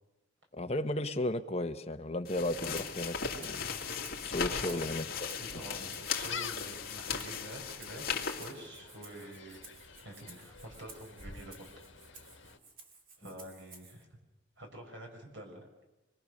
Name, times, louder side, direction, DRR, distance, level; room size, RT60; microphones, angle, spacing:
voice 1, 0.6-3.7 4.2-5.4, left 1 dB, 30° left, 7 dB, 1.1 m, -34 dB
sound 1, 2.2-8.5, left 6 dB, 50° left, 2.4 m, -37 dB
Rattle (instrument), 2.7-14.0, right 4 dB, 45° right, 2.7 m, -56 dB
voice 2, 4.5-4.9 5.4-9.7 10.0-11.7 13.2-14.1 14.6-15.7, right 1 dB, 70° right, 3 dB, 5.8 m, -47 dB
Gull seagull, 4.8-12.6, left 5 dB, 70° left, 1.9 m, -48 dB
25.0 x 22.5 x 6.5 m, 1.1 s
head